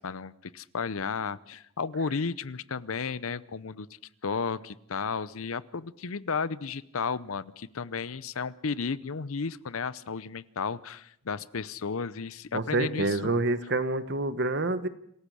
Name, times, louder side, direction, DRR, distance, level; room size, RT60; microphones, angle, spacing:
voice 1, 0.0-3.9 4.2-13.3, left 5 dB, 80° left, 18 dB, 0.7 m, -33 dB
voice 2, 12.5-14.9, right 2 dB, 55° right, 12 dB, 1.2 m, -27 dB
26.5 x 15.5 x 6.3 m, 0.71 s
head